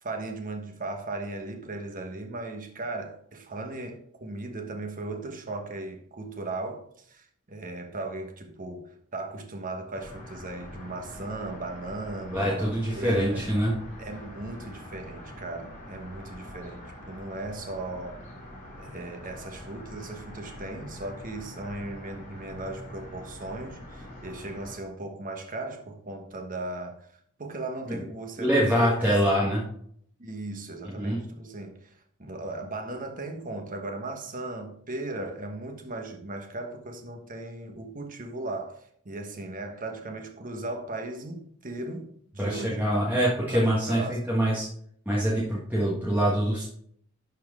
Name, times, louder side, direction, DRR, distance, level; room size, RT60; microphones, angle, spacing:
voice 1, 0.0-13.5 14.0-18.2 18.8-27.1 27.4-29.2 30.2-38.8 39.0-43.0 43.2-44.2, right 2 dB, 40° right, 1.2 m, -37 dB
sound 1, 9.9-24.8, left 1 dB, 35° left, 2.9 m, -44 dB
voice 2, 12.3-13.7 28.4-29.7 30.9-31.2 42.4-44.7 45.0-46.6, equal, 10° right, 1.5 m, -24 dB
11.5 x 4.4 x 3.6 m
head